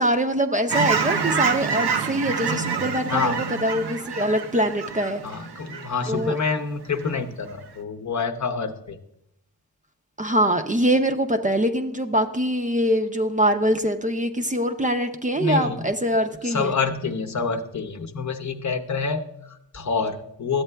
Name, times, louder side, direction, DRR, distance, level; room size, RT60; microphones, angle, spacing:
voice 1, 0.0-5.2 6.1-6.4 10.2-16.7, equal, 20° right, 6 dB, 0.6 m, -23 dB
Fowl / Chirp tweet, 0.7-6.5 6.9-7.2, right 6 dB, 85° right, 0.7 m, -27 dB
voice 2, 5.2-9.0 15.4-15.8 16.4-20.6, left 4 dB, 45° left, 5 dB, 0.8 m, -27 dB
13.0 x 7.9 x 2.2 m, 0.81 s
cardioid pair, 60°, 38 cm